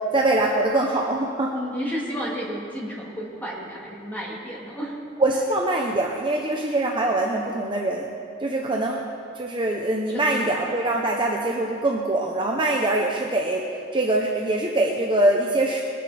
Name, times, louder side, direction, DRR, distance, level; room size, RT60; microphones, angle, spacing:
voice 1, 0.1-1.5 5.2-8.1 8.4-9.0 9.4-13.7 13.9-15.8, right 2 dB, 25° right, -1 dB, 0.8 m, -23 dB
voice 2, 1.5-4.9 10.1-10.6, equal, 10° left, -5 dB, 2.6 m, -32 dB
21.0 x 9.4 x 4.3 m, 2.4 s
head